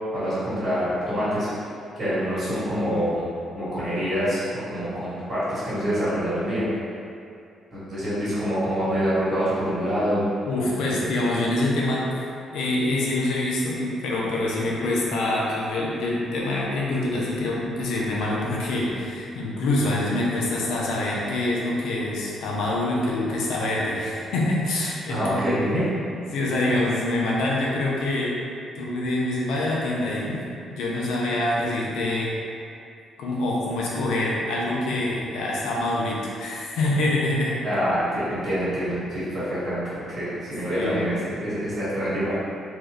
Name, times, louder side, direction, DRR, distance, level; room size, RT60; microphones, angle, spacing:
voice 1, 0.1-1.5 2.0-3.2 3.5-6.7 7.7-10.3 10.8-10.9 25.1-25.8 26.7-26.8 37.6-42.4, equal, 35° right, -12 dB, 1.3 m, -26 dB
voice 2, 10.4-12.3 12.5-25.6 26.3-28.3 28.8-30.4 30.7-32.3 33.2-37.6 40.7-41.1, left 2 dB, 85° left, -4 dB, 0.6 m, -25 dB
2.7 x 2.3 x 3.3 m, 2.5 s
cardioid pair, 90°, 0 cm